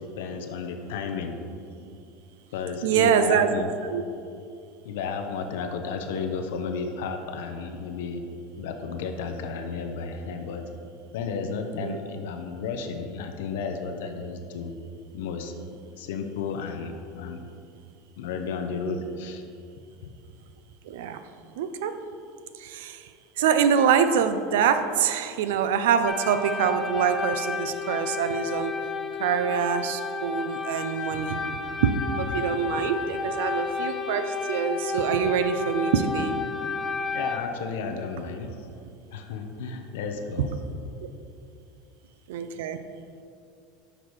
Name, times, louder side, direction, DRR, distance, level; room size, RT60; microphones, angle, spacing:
voice 1, 0.0-1.4 2.5-3.7 4.8-8.2 8.6-10.7 11.1-14.7 15.1-15.5 16.0-17.5 18.2-19.4 37.1-38.7 39.1-40.5, left 5 dB, 85° left, 5 dB, 0.5 m, -33 dB
voice 2, 2.8-3.5 3.9-4.0 11.8-12.0 20.9-21.2 21.6-21.9 22.5-23.1 23.4-28.7 29.2-36.4 42.3-42.8, right 7 dB, 85° right, 10 dB, 0.4 m, -25 dB
sound 1, 26.1-37.4, left 4 dB, 15° left, 0.4 m, -31 dB
6.3 x 3.9 x 4.6 m, 2.5 s
supercardioid pair, 125°, 0 cm